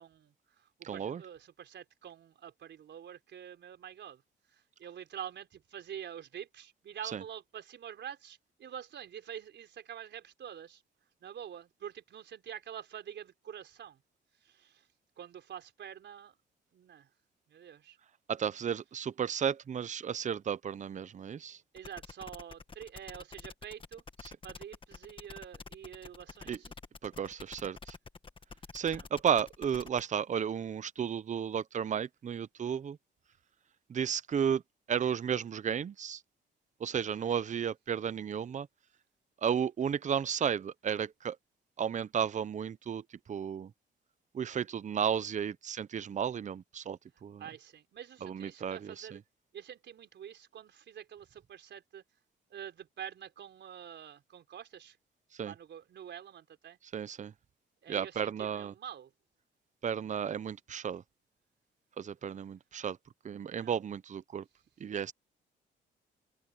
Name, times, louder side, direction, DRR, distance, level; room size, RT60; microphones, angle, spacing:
voice 1, 0.0-4.2 4.5-10.8 11.2-14.0 14.4-14.9 15.2-16.3 16.7-17.1 17.5-18.0 21.7-24.0 24.4-26.7 28.9-29.0 37.2-37.3 47.4-49.2 49.5-52.0 52.5-55.0 55.4-56.8 57.8-59.1 63.6-63.7, right 9 dB, 65° right, 4.3 m, -47 dB
voice 2, 0.8-1.2 7.1-7.2 18.3-21.6 26.5-26.6 27.0-28.0 28.7-33.0 33.9-34.6 34.9-36.2 36.8-38.7 39.4-41.4 41.8-43.0 43.3-43.7 44.3-47.4 48.2-49.2 55.3-55.5 56.9-57.3 57.9-58.7 59.8-61.0 62.0-63.0 63.2-64.4 64.8-65.1, right 8 dB, 40° right, 0.7 m, -33 dB
sound 1, 21.8-30.0, left 4 dB, 25° left, 1.5 m, -48 dB
open air
cardioid pair, 90°, 20 cm